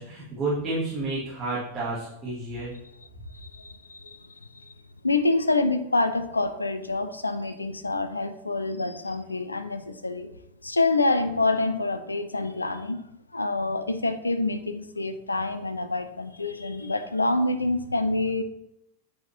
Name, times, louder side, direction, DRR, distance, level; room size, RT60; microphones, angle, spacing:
voice 1, 0.0-2.7, right 2 dB, 20° right, -10 dB, 2.0 m, -30 dB
voice 2, 3.6-4.2 5.0-10.3 10.6-13.0 13.3-18.4, left 2 dB, 80° left, 10 dB, 0.4 m, -26 dB
8.2 x 4.9 x 2.8 m, 0.82 s
figure-of-eight pair, 90°, 0 cm